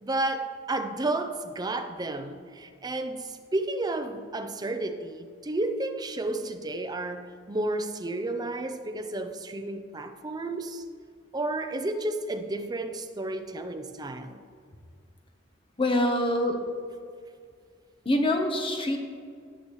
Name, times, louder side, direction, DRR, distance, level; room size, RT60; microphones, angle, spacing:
voice 1, 0.0-10.8 11.3-14.4, right 2 dB, 20° right, 0.5 m, -32 dB
voice 2, 15.8-16.6 18.0-19.0, left 1 dB, 25° left, 1.0 m, -25 dB
17.0 x 7.0 x 3.1 m
head